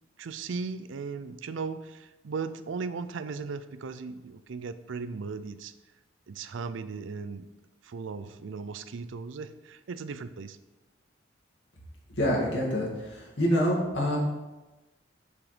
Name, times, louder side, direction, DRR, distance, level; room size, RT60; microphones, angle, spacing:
voice 1, 0.2-5.7 6.3-7.5 7.8-10.6, right 4 dB, 75° right, 12 dB, 0.4 m, -37 dB
voice 2, 12.1-14.2, equal, 70° left, -4 dB, 2.3 m, -26 dB
7.1 x 5.0 x 5.0 m, 1.1 s
head